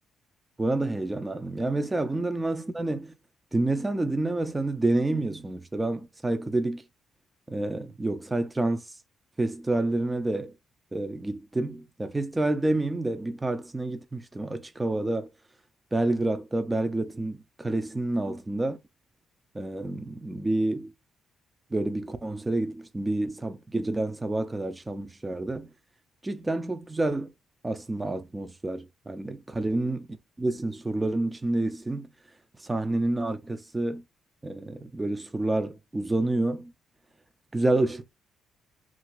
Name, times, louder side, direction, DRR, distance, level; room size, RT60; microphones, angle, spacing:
voice 1, 0.6-3.1 3.5-6.8 7.5-8.8 9.4-10.5 10.9-15.3 15.9-18.8 19.5-20.9 21.7-25.7 26.2-27.3 27.6-30.0 30.4-32.1 32.6-34.0 34.4-36.7 37.5-38.0, right 2 dB, 15° right, 0.4 m, -28 dB
2.8 x 2.5 x 2.9 m
cardioid pair, 90°, 0 cm